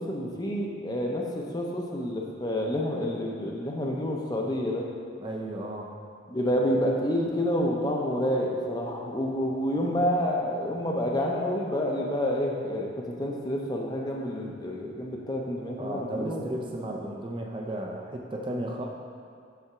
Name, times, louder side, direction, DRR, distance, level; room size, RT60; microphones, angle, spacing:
voice 1, 0.0-4.9 6.3-16.5, equal, 20° left, -1 dB, 0.5 m, -28 dB
voice 2, 5.2-5.9 15.8-18.9, right 1 dB, 25° right, 0 dB, 0.4 m, -34 dB
5.7 x 3.5 x 5.7 m, 2.2 s
head